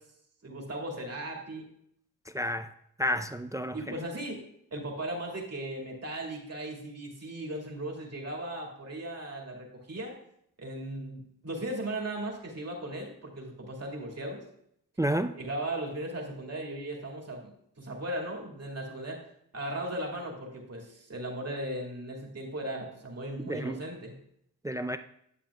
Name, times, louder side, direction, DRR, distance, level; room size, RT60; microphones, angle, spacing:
voice 1, 0.4-1.6 3.7-4.4 4.7-10.1 10.6-14.4 15.3-19.2 19.5-24.1, right 1 dB, 45° right, 2.4 m, -37 dB
voice 2, 2.3-2.7 3.0-3.9 15.0-15.3 23.5-23.8 24.6-25.0, equal, 10° right, 0.3 m, -30 dB
10.5 x 7.0 x 2.4 m
cardioid pair, 55°, 34 cm